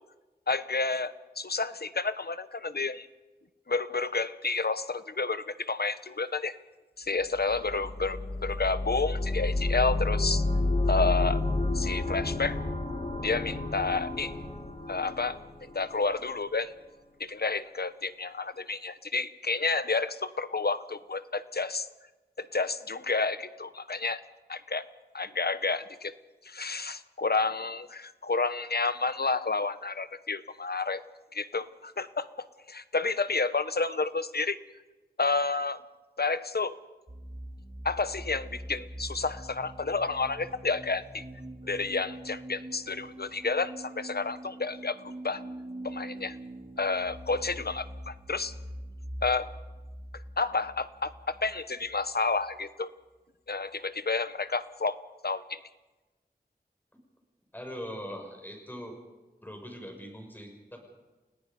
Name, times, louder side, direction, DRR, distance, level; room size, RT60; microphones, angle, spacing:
voice 1, 0.5-3.1 3.7-6.6 7.0-10.5 10.9-11.4 11.7-12.6 13.2-14.4 14.9-15.4 15.7-16.7 17.2-21.9 22.4-24.2 24.5-24.9 25.1-26.1 26.4-31.0 31.3-32.3 32.7-34.6 35.2-35.8 36.2-36.7 37.8-41.2 41.7-45.4 45.8-46.4 46.8-48.5 49.2-49.5 50.4-52.9 53.5-54.9 55.2-55.6, left 3 dB, 70° left, 13 dB, 1.0 m, -30 dB
sound 1, 7.4-16.2, left 2 dB, 45° left, 3.5 m, -30 dB
sound 2, 37.1-52.6, right 1 dB, 40° right, 4.3 m, -44 dB
voice 2, 57.5-59.0 59.4-60.8, equal, 10° left, 2 dB, 6.5 m, -41 dB
29.5 x 19.0 x 5.4 m, 1.2 s
wide cardioid pair, 45°, 17 cm